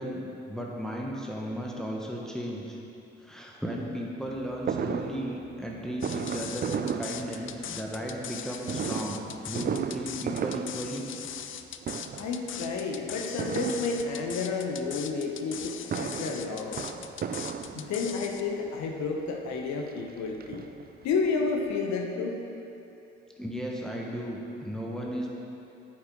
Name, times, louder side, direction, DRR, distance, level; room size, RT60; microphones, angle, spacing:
voice 1, 0.0-2.8 3.2-11.1 23.4-25.3, equal, ahead, -2 dB, 1.3 m, -35 dB
Fireworks, 4.7-7.9 8.6-11.6 11.8-12.4 13.4-14.5 15.6-18.3 19.1-19.2 19.4-19.5 19.9-21.1 21.4-21.5 21.7-21.8, right 7 dB, 30° right, 0.5 m, -35 dB
sound 1, 6.0-18.4, left 9 dB, 40° left, 0.5 m, -40 dB
voice 2, 12.2-16.9 17.7-20.7 21.0-22.4, left 4 dB, 65° left, 2 dB, 1.0 m, -31 dB
8.8 x 7.5 x 3.8 m, 2.9 s
hypercardioid pair, 45°, 30 cm